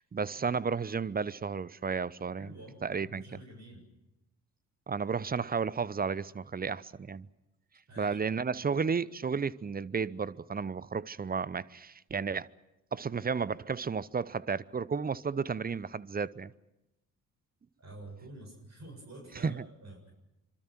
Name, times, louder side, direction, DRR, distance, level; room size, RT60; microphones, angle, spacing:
voice 1, 0.0-2.5 2.8-3.4 4.9-7.3 8.0-12.5 12.9-16.5 19.4-19.6, right 5 dB, 20° right, 0.8 m, -33 dB
voice 2, 2.4-3.9 7.9-8.2 17.8-20.1, right 1 dB, 40° right, 7.4 m, -49 dB
26.0 x 26.0 x 6.1 m
figure-of-eight pair, 45°, 43 cm